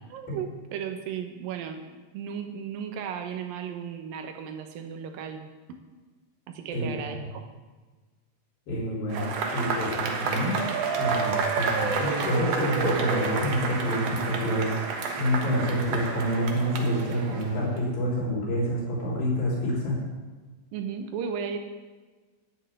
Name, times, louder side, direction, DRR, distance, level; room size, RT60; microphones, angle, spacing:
voice 1, 0.1-1.8 2.1-5.4 5.7-5.8 6.5-7.4 20.7-21.6, right 7 dB, 80° right, 5 dB, 2.8 m, -35 dB
voice 2, 6.7-7.3 8.7-9.2 9.5-10.6 10.9-14.8 15.2-19.9, equal, 75° left, -5 dB, 5.5 m, -28 dB
Cheering / Applause / Crowd, 9.1-17.8, right 4 dB, 60° right, 1.9 m, -29 dB
10.0 x 6.8 x 9.0 m, 1.3 s
omnidirectional pair, 4.1 m